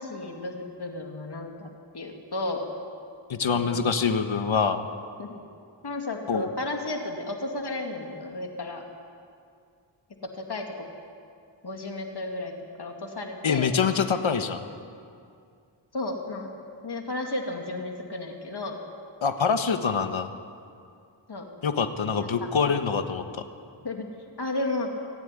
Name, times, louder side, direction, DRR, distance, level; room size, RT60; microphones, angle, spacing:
voice 1, 0.0-2.7 3.5-3.9 5.2-5.4 5.8-8.8 10.3-10.7 11.6-12.5 12.8-13.7 15.9-16.5 16.8-18.8 21.3-21.5 22.2-22.5 23.8-24.0 24.4-24.9, left 2 dB, 55° left, 2 dB, 2.5 m, -33 dB
voice 2, 3.3-4.9 6.3-6.5 13.4-14.7 19.2-20.3 21.6-23.3, left 6 dB, 85° left, 7 dB, 1.5 m, -25 dB
24.0 x 16.0 x 9.9 m, 2.3 s
wide cardioid pair, 100°, 46 cm